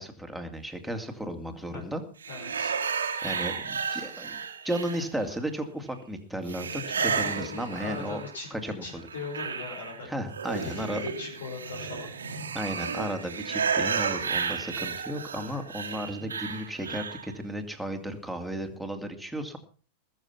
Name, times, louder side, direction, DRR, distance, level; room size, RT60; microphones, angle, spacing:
voice 1, 0.0-2.0 3.2-4.4 4.6-8.2 8.5-9.0 10.1-11.0 12.5-19.6, equal, ahead, 3 dB, 2.5 m, -34 dB
voice 2, 1.5-1.8 2.3-2.7 6.9-10.2 10.5-12.1 16.2-16.3, left 4 dB, 65° left, 0 dB, 5.1 m, -40 dB
sound 1, 2.2-5.4 6.5-8.5 8.8-17.3, right 6 dB, 70° right, 1.6 m, -33 dB
20.5 x 7.5 x 5.9 m, 0.41 s
figure-of-eight pair, 90°, 0 cm